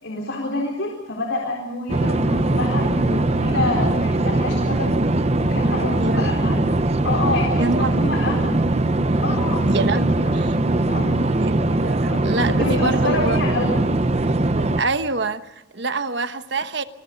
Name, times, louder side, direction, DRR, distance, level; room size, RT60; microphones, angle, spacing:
voice 1, 0.0-4.9 5.4-6.7 7.0-8.6 9.2-10.6 10.9-11.2 12.1-13.9, left 2 dB, 70° left, 4.2 m, -27 dB
sound 1, 1.9-14.8, right 2 dB, 30° right, 0.8 m, -21 dB
voice 2, 7.5-7.9 9.7-10.6 11.4-13.4 14.8-16.8, right 3 dB, 60° right, 1.1 m, -26 dB
27.5 x 21.5 x 5.3 m
head